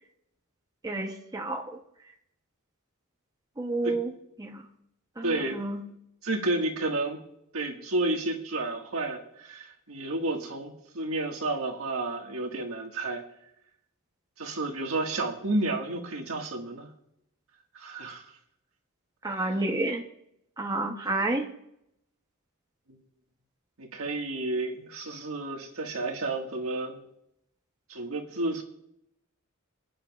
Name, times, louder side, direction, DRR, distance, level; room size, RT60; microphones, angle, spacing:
voice 1, 0.8-1.6 3.6-4.1 4.4-4.6 5.2-5.8 19.2-20.0 20.6-21.5, right 2 dB, 15° right, 2 dB, 0.8 m, -30 dB
voice 2, 5.2-5.6 6.2-7.2 7.5-13.2 14.4-16.9 17.7-18.2 19.3-19.6 23.8-27.0 27.9-28.6, right 2 dB, 70° right, 2 dB, 1.7 m, -31 dB
26.0 x 9.2 x 2.4 m, 0.79 s
head